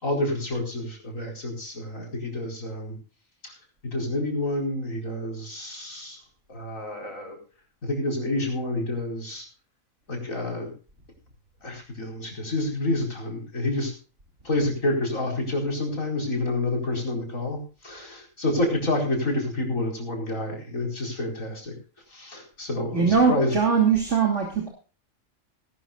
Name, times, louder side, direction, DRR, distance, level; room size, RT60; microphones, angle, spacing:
voice 1, 0.0-3.0 3.4-3.5 3.8-6.2 6.5-7.4 7.8-9.5 10.1-10.7 11.6-13.9 14.4-21.7 22.1-23.5, left 1 dB, 85° left, 2 dB, 5.1 m, -28 dB
voice 2, 22.9-24.7, right 6 dB, 60° right, 2 dB, 3.1 m, -21 dB
20.0 x 12.5 x 2.4 m, 0.35 s
omnidirectional pair, 1.4 m